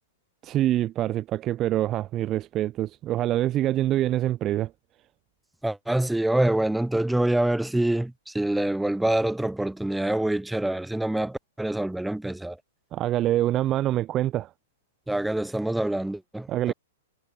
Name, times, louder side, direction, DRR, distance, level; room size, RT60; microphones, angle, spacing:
voice 1, 0.4-4.7 12.9-14.5 16.5-16.7, right 13 dB, 30° right, 0.6 m, -25 dB
voice 2, 5.6-12.6 15.1-16.7, right 1 dB, 5° right, 2.1 m, -26 dB
figure-of-eight pair, 110°, 0 cm